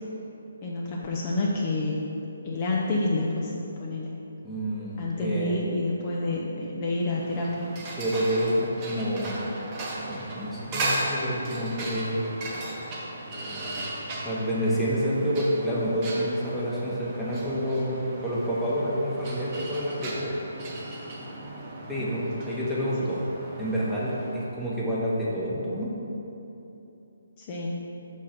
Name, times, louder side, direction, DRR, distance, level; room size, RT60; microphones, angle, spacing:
voice 1, 0.6-2.0 2.4-3.5 3.8-4.1 5.0-7.7 21.9-22.1 27.4-27.8, left 2 dB, 30° left, -3 dB, 0.6 m, -28 dB
voice 2, 4.4-5.5 8.0-9.4 10.0-12.2 13.3-13.8 14.2-20.3 21.9-23.2 23.6-25.9, equal, ahead, -10 dB, 1.0 m, -28 dB
sound 1, 7.1-24.5, right 2 dB, 25° right, 0.9 m, -36 dB
6.2 x 3.8 x 5.8 m, 2.9 s
hypercardioid pair, 160°, 0 cm